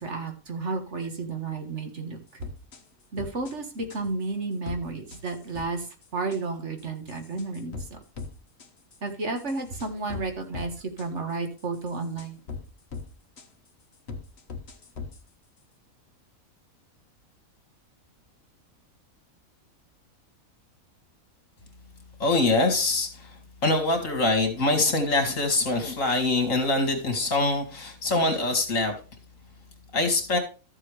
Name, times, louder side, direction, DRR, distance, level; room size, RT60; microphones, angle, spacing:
voice 1, 0.0-2.2 3.1-5.9 6.1-8.0 9.0-12.4, right 3 dB, 55° right, 5 dB, 1.7 m, -32 dB
sound 1, 2.4-2.8 3.2-3.5 3.9-4.0 4.7-4.8 5.1-5.7 6.0-6.4 6.8-8.3 8.6-9.0 9.4-10.7 11.0-11.1 11.6-12.7 12.9-13.1 13.4-13.5 14.1-15.2, left 5 dB, 50° left, 1.4 m, -39 dB
voice 2, 22.2-23.3 23.6-28.9 29.9-30.4, left 2 dB, 65° left, 5 dB, 2.6 m, -24 dB
13.0 x 7.5 x 3.3 m, 0.33 s
omnidirectional pair, 1.5 m